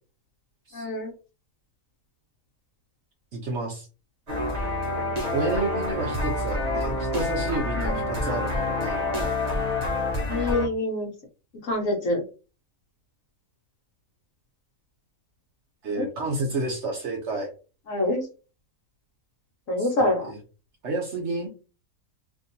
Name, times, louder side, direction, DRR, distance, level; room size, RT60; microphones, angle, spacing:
voice 1, 0.7-1.1 7.8-8.0 10.2-11.1 11.6-12.2 15.9-16.1 17.9-18.3 19.7-20.3, left 1 dB, 60° left, 1 dB, 1.3 m, -26 dB
voice 2, 3.3-3.9 5.3-9.3 15.8-17.5 19.8-20.4 20.8-21.5, right 2 dB, 60° right, 2 dB, 0.9 m, -30 dB
sound 1, 4.3-10.7, left 2 dB, 35° right, 0.8 m, -27 dB
3.6 x 2.6 x 2.6 m, 0.34 s
omnidirectional pair, 1.6 m